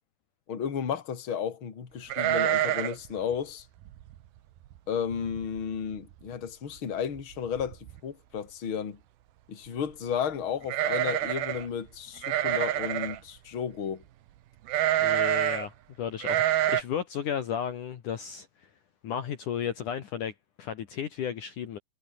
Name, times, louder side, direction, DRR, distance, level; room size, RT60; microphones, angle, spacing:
voice 1, 0.5-3.7 4.9-9.0 9.5-14.0, left 7 dB, 35° left, 3.1 m, -33 dB
sound 1, 2.1-3.1 3.3-3.4 3.9-4.2 4.7-4.8 5.1-5.6 5.9-6.0 7.2-7.3 7.6-8.0 10.6-11.7 12.2-13.2 14.7-15.7 16.2-16.8, right 13 dB, 75° right, 3.2 m, -27 dB
voice 2, 15.0-18.5 19.0-21.8, left 8 dB, 60° left, 3.0 m, -34 dB
omnidirectional pair, 4.4 m